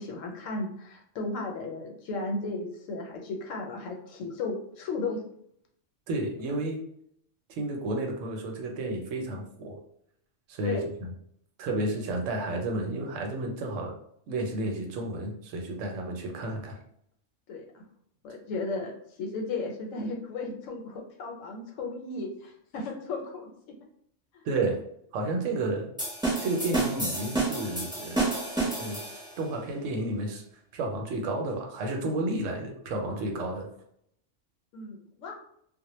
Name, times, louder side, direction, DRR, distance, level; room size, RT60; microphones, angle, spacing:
voice 1, 0.0-5.2 10.6-10.9 17.5-17.8 18.2-18.9 19.2-23.5 24.3-24.4 34.7-35.3, left 3 dB, 90° left, 1 dB, 1.0 m, -35 dB
voice 2, 6.1-6.8 7.5-9.8 10.5-10.8 11.6-13.9 14.3-16.8 24.4-24.8 25.1-25.9 26.4-28.4 28.6-29.0 29.4-30.4 30.7-33.7, right 2 dB, 85° right, 2 dB, 1.0 m, -31 dB
sound 1, 26.0-29.4, right 2 dB, 5° right, 0.6 m, -30 dB
2.1 x 2.1 x 3.0 m, 0.70 s
omnidirectional pair, 1.3 m